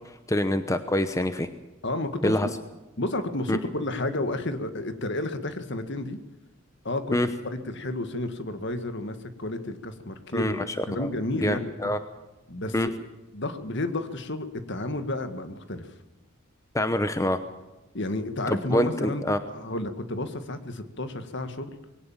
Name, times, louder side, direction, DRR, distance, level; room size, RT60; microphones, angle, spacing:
voice 1, 0.3-1.5 2.2-2.5 3.5-3.6 7.1-7.3 10.3-10.8 11.4-12.0 12.7-12.9 16.7-17.4 18.5-19.4, left 1 dB, 15° left, 10 dB, 0.9 m, -25 dB
voice 2, 1.8-2.5 3.0-6.2 6.8-7.2 7.4-11.9 12.5-12.9 13.3-15.9 17.9-21.8, left 2 dB, 55° left, 9 dB, 1.9 m, -31 dB
22.0 x 18.0 x 7.4 m, 1.0 s
head